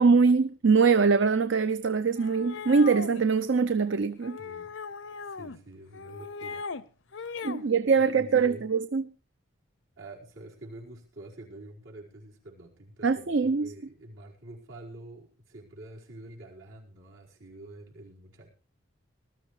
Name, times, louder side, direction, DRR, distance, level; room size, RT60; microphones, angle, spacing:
voice 1, 0.0-4.4 7.4-9.1 13.0-13.7, right 5 dB, 70° right, 0.6 m, -23 dB
sound 1, 2.2-3.2 4.2-5.6 5.9-6.8 7.1-7.7, left 5 dB, 75° left, 0.6 m, -38 dB
voice 2, 4.4-4.7 5.2-6.6 7.6-8.7 10.0-18.5, right 1 dB, 85° right, 5.0 m, -47 dB
19.5 x 13.0 x 3.3 m
head